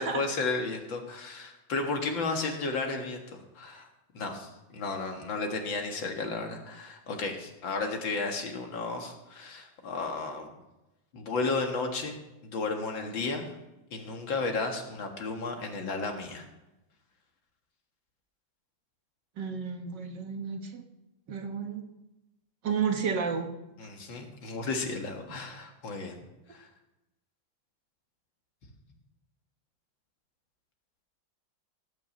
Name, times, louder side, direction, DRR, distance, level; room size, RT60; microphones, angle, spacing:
voice 1, 0.0-3.9 4.1-10.5 11.1-13.5 13.9-16.5 23.8-26.2 26.5-26.7, left 3 dB, 80° left, 3 dB, 2.5 m, -33 dB
voice 2, 19.4-20.8 21.3-21.8 22.6-23.5 25.3-25.4, right 6 dB, 65° right, 4 dB, 2.0 m, -31 dB
18.0 x 6.0 x 7.8 m, 0.97 s
omnidirectional pair, 2.1 m